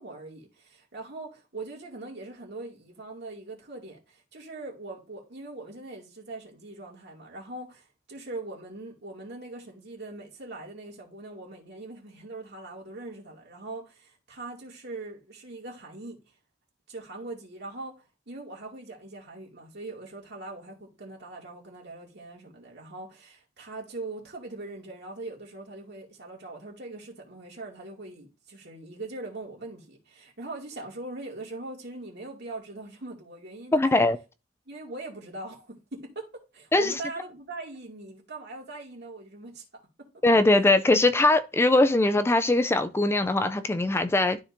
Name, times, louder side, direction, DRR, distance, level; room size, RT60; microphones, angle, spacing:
voice 1, 0.0-16.2 16.9-34.0 34.7-40.1, right 2 dB, 65° right, 2.4 m, -41 dB
voice 2, 33.7-34.2 36.7-36.9 40.2-44.4, left 2 dB, 15° left, 0.3 m, -21 dB
12.5 x 4.3 x 2.6 m
head